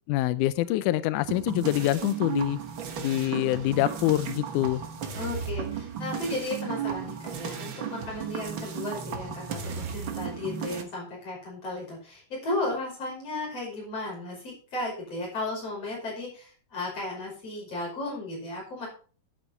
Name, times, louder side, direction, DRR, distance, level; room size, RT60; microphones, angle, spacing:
voice 1, 0.1-2.6 3.0-4.8, left 15 dB, 85° left, 15 dB, 1.8 m, -25 dB
voice 2, 0.6-1.0 5.1-18.9, left 2 dB, 40° left, -2 dB, 6.4 m, -35 dB
sound 1, 1.3-10.8, right 7 dB, 70° right, 1.1 m, -34 dB
11.0 x 8.7 x 4.3 m, 0.40 s
omnidirectional pair, 4.2 m